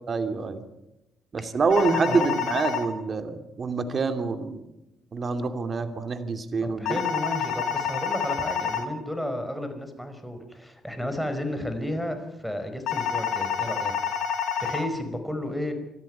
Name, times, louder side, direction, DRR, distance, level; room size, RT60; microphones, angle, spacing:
voice 1, 0.1-0.6 1.3-4.6 5.1-7.0, right 4 dB, 45° right, 8 dB, 2.6 m, -26 dB
sound 1, 1.7-2.8 6.8-8.8 12.9-14.8, left 7 dB, 75° left, 3.0 m, -28 dB
voice 2, 6.6-13.9 14.6-15.7, left 1 dB, ahead, 7 dB, 5.0 m, -32 dB
26.0 x 13.5 x 9.5 m, 0.92 s
cardioid pair, 90°, 0 cm